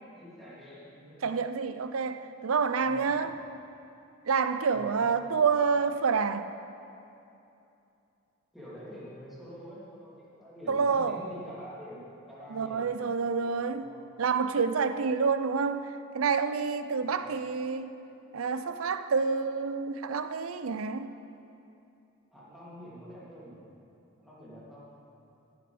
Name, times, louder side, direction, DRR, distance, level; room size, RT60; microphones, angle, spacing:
voice 1, 0.1-1.2 2.8-3.1 4.7-5.1 8.5-13.5 13.7-14.0 17.0-17.4 22.3-23.6 24.2-24.9, equal, ahead, -9 dB, 2.8 m, -46 dB
voice 2, 1.2-3.4 4.2-6.5 10.7-11.2 12.5-13.9 14.2-17.9 18.3-21.2, right 5 dB, 90° right, 11 dB, 0.5 m, -28 dB
16.5 x 7.0 x 5.1 m, 2.8 s
head